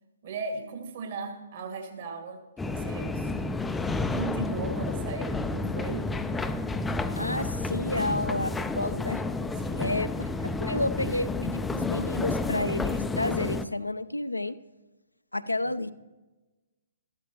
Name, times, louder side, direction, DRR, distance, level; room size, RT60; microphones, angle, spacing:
voice 1, 0.2-3.3 4.1-6.0 8.0-8.1 9.6-9.9, right 4 dB, 50° right, 4 dB, 2.0 m, -37 dB
sound 1, 2.6-13.7, left 3 dB, 5° left, 0.4 m, -30 dB
voice 2, 7.2-9.2 9.8-10.1 10.4-14.6 15.3-15.9, left 2 dB, 85° left, 12 dB, 0.5 m, -30 dB
13.5 x 12.0 x 2.9 m, 1.2 s
figure-of-eight pair, 125°, 0 cm